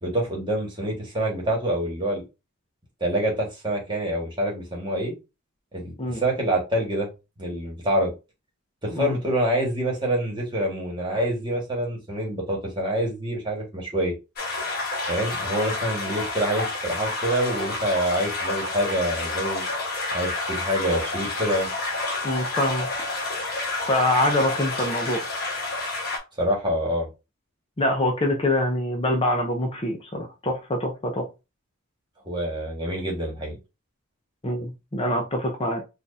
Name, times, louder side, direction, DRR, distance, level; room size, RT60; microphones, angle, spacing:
voice 1, 0.0-2.2 3.0-5.1 5.7-7.1 7.4-8.1 8.8-14.1 15.1-19.6 20.1-21.7 26.4-27.1 32.2-33.6, right 1 dB, 20° right, 1.4 m, -26 dB
sound 1, 14.4-26.2, left 3 dB, 45° left, 1.1 m, -29 dB
voice 2, 22.2-22.9 23.9-25.2 27.8-31.3 34.4-35.8, left 1 dB, 25° left, 0.6 m, -25 dB
4.4 x 2.4 x 2.6 m
head